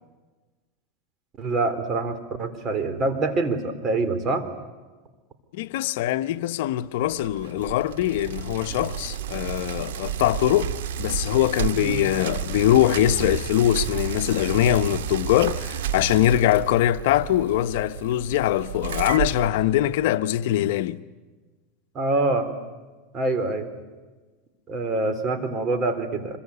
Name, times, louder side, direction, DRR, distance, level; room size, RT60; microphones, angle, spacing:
voice 1, 1.4-4.5 11.8-12.1 21.9-22.5 23.1-23.7 24.7-26.4, right 3 dB, 30° right, 3.7 m, -25 dB
voice 2, 5.5-10.7 11.0-21.0, left 13 dB, 70° left, 0.9 m, -22 dB
Bicycle, 7.0-20.2, right 9 dB, 85° right, 2.0 m, -32 dB
26.0 x 23.0 x 9.8 m
supercardioid pair, 130°, 0 cm